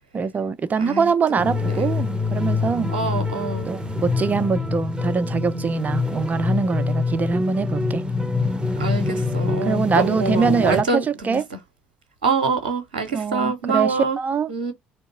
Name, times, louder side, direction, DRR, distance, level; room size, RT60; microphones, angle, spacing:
voice 1, 0.1-2.9 3.7-8.0 9.6-11.4 13.1-14.5, right 5 dB, 35° right, 0.6 m, -23 dB
voice 2, 0.8-1.9 2.9-3.7 8.8-11.4 12.2-14.2 14.5-14.7, right 4 dB, 85° right, 0.7 m, -26 dB
sound 1, 1.4-10.8, left 3 dB, 20° right, 0.9 m, -25 dB
3.6 x 2.7 x 3.7 m
figure-of-eight pair, 50°, 5 cm